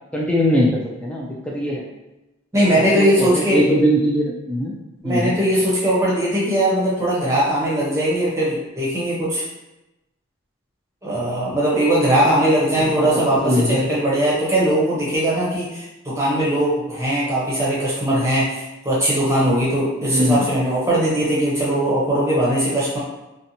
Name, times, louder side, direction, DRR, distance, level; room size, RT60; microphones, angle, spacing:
voice 1, 0.1-1.8 2.7-4.7 5.0-5.3 12.2-12.4 12.7-13.8 20.1-20.5, equal, 5° left, -3 dB, 0.3 m, -21 dB
voice 2, 2.5-3.6 5.0-9.4 11.0-23.0, right 1 dB, 15° right, -7 dB, 0.7 m, -20 dB
2.7 x 2.2 x 2.6 m, 0.99 s
head